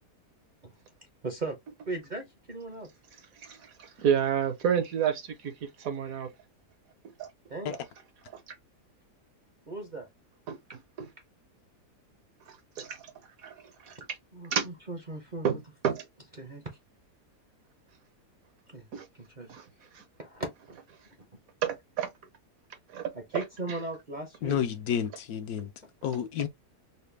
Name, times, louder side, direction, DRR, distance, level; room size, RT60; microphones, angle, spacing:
voice 1, 1.2-1.6 1.9-2.9 7.5-7.8 9.7-10.1 14.3-15.6 16.4-16.6 18.7-18.9 19.2-19.6 20.2-20.8 23.1-24.6, right 2 dB, 40° right, 0.7 m, -37 dB
voice 2, 3.4-6.3 7.2-7.3 10.5-10.6 11.0-11.1 12.5-13.0 13.4-13.5 13.8-14.0 14.5-14.7 15.4-15.6 15.8-16.1 18.9-19.1 19.5-19.6 19.9-20.0 21.6-22.1 22.9-23.4, right 8 dB, 65° right, 1.1 m, -30 dB
voice 3, 24.4-25.7 26.0-26.5, left 9 dB, 70° left, 1.1 m, -30 dB
4.1 x 2.1 x 3.2 m
omnidirectional pair, 1.7 m